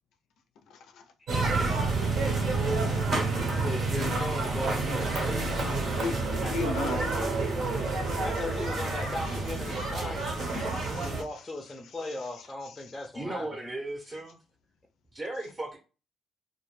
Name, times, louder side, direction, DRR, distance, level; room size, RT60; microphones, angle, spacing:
voice 1, 0.7-1.1 1.7-2.5 5.7-6.2 6.4-7.5 8.0-9.0 9.3-13.0, left 4 dB, 80° left, 0.4 m, -41 dB
voice 2, 1.2-2.1 3.6-6.7 8.2-10.3 10.9-13.6, left 2 dB, 20° left, 0.5 m, -38 dB
sound 1, 1.3-11.2, right 3 dB, 65° right, 0.8 m, -29 dB
voice 3, 13.1-14.4 15.1-15.8, right 2 dB, 20° right, 0.7 m, -36 dB
2.2 x 2.1 x 3.1 m
cardioid pair, 90°, 0 cm